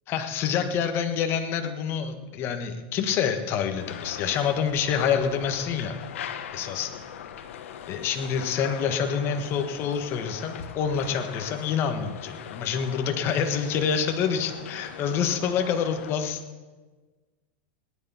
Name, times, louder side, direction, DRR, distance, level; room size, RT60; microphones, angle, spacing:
voice 1, 0.1-5.9 6.5-6.9 7.9-16.4, left 7 dB, 35° left, 6 dB, 1.5 m, -27 dB
sound 1, 3.8-16.1, left 8 dB, 85° left, 1.2 m, -40 dB
18.0 x 10.5 x 5.7 m, 1.3 s
supercardioid pair, 145°, 7 cm